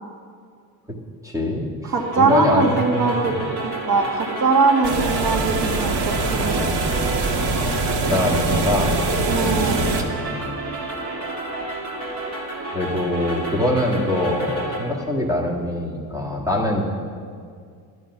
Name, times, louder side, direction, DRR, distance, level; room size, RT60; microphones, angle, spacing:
voice 1, 1.2-3.5 8.1-8.9 9.4-10.5 12.7-16.9, left 1 dB, 10° right, -1 dB, 1.7 m, -24 dB
voice 2, 1.9-3.4 3.6-6.6 9.3-9.8, right 4 dB, 60° right, 2 dB, 1.9 m, -21 dB
sound 1, 2.0-14.8, right 2 dB, 45° right, 2.2 m, -30 dB
sound 2, 4.8-10.0, right 3 dB, 85° right, 1.6 m, -23 dB
12.0 x 11.0 x 6.0 m, 2.2 s
cardioid pair, 165°, 39 cm